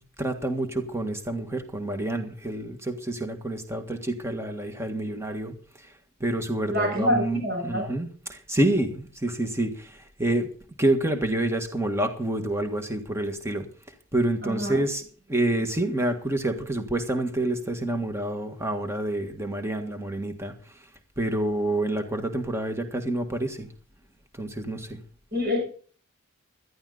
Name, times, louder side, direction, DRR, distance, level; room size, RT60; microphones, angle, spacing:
voice 1, 0.0-5.9 6.2-10.5 10.8-13.7 14.1-20.5 21.2-23.7 24.3-25.0, right 1 dB, 10° right, 6 dB, 1.6 m, -28 dB
voice 2, 6.7-7.8 14.4-14.8 25.3-25.6, left 1 dB, 45° right, 1 dB, 7.2 m, -26 dB
17.5 x 12.5 x 4.0 m, 0.43 s
head